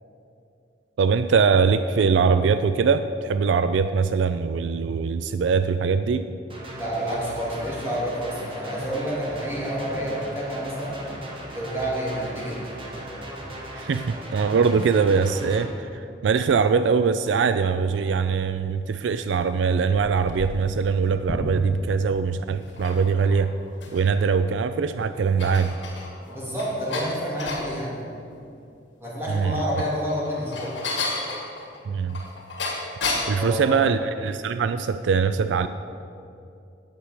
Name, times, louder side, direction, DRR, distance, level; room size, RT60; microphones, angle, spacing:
voice 1, 1.0-6.3 13.7-23.5 23.9-25.8 29.3-29.6 31.9-32.2 33.3-35.7, right 5 dB, 75° right, 11 dB, 0.4 m, -22 dB
sound 1, 6.5-15.6, right 1 dB, 30° right, 1.6 m, -38 dB
voice 2, 6.8-11.0 11.5-12.6 26.3-28.0 29.0-30.7 33.3-33.8, equal, 15° right, -6 dB, 3.0 m, -29 dB
sound 2, 19.7-21.9 22.6-24.2 24.6-24.7 25.1-27.7 29.4-33.4, left 3 dB, 75° left, 2.3 m, -32 dB
8.9 x 6.3 x 8.1 m, 2.5 s
head